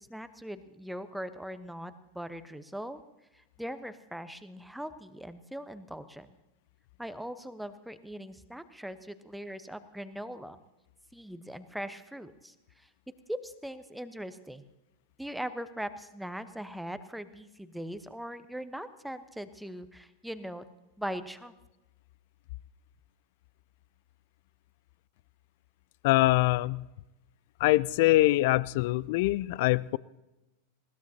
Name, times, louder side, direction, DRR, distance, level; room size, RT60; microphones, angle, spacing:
voice 1, 0.0-3.0 3.3-6.3 7.0-10.6 11.1-12.9 13.3-14.6 15.2-20.7 21.0-21.5, equal, ahead, 11 dB, 1.0 m, -40 dB
voice 2, 26.0-26.8 27.6-30.0, left 18 dB, 50° left, 22 dB, 0.4 m, -24 dB
21.0 x 19.0 x 2.8 m, 0.98 s
figure-of-eight pair, 90°, 0 cm